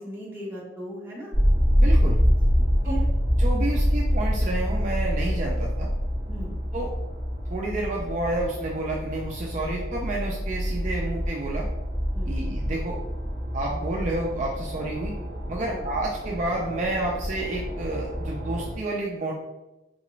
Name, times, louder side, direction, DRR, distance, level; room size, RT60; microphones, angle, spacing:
voice 1, 0.0-1.3 2.2-3.1 6.3-6.5 12.1-12.3 15.7-15.8, right 1 dB, 10° right, -5 dB, 0.9 m, -38 dB
sound 1, 1.3-18.8, equal, 40° left, 1.1 m, -26 dB
voice 2, 1.8-2.2 2.8-2.9 3.4-5.9 6.7-6.9 7.5-11.7 12.3-13.0 13.5-15.1 15.5-19.3, right 2 dB, 40° right, -2 dB, 0.4 m, -30 dB
3.7 x 2.4 x 3.0 m, 1.0 s
head